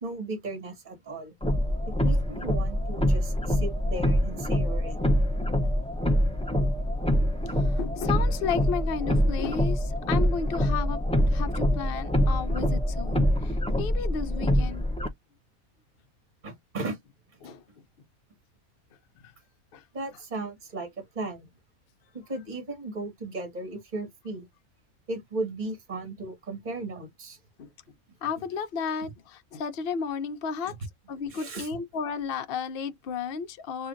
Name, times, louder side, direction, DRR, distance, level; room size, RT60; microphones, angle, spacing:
voice 1, 0.0-1.3 2.0-5.0 16.4-17.0 19.9-21.5 22.1-24.5 25.1-27.4 31.3-31.7, right 2 dB, 35° right, 1.9 m, -36 dB
sound 1, 1.4-15.1, equal, 10° left, 0.4 m, -25 dB
voice 2, 7.4-11.0 11.3-14.9 17.4-17.6 19.2-19.3 19.7-19.8 27.6-27.7 28.2-30.7 31.1-33.9, left 6 dB, 55° left, 0.7 m, -33 dB
7.3 x 2.5 x 2.5 m
omnidirectional pair, 1.5 m